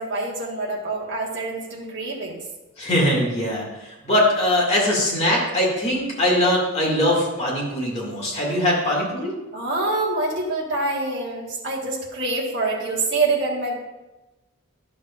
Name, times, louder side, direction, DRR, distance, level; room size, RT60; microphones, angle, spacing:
voice 1, 0.0-2.4 9.5-13.7, right 3 dB, 50° right, -5 dB, 1.6 m, -26 dB
voice 2, 2.8-9.3, left 1 dB, 30° left, -4 dB, 2.1 m, -21 dB
11.0 x 7.0 x 2.5 m, 1.0 s
head